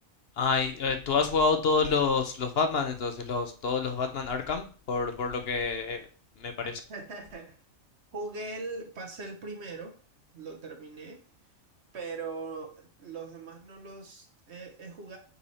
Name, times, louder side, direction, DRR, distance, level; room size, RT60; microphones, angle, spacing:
voice 1, 0.4-6.1 6.4-6.5, left 4 dB, 55° left, 7 dB, 0.8 m, -28 dB
voice 2, 6.9-7.6 8.1-10.0 10.3-11.2 11.9-15.2, right 3 dB, 55° right, 3 dB, 1.2 m, -40 dB
5.5 x 4.6 x 4.2 m, 0.40 s
omnidirectional pair, 1.4 m